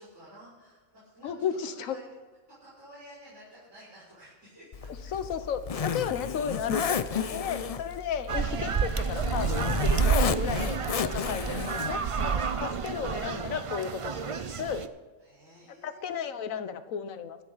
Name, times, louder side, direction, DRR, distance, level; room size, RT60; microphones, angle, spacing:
voice 1, 0.0-1.3 1.6-2.0 2.6-4.9 5.2-5.3 7.3-7.4 7.7-8.0 15.2-16.5, equal, 85° right, -11 dB, 6.0 m, -52 dB
voice 2, 1.2-2.0 5.1-14.8 15.8-17.4, left 7 dB, 90° left, 11 dB, 1.2 m, -34 dB
Zipper (clothing), 4.7-12.1, left 6 dB, 70° left, 0.3 m, -33 dB
sound 1, 8.3-14.9, right 6 dB, 50° right, 0.4 m, -29 dB
24.0 x 8.3 x 4.0 m, 1.4 s
omnidirectional pair, 1.4 m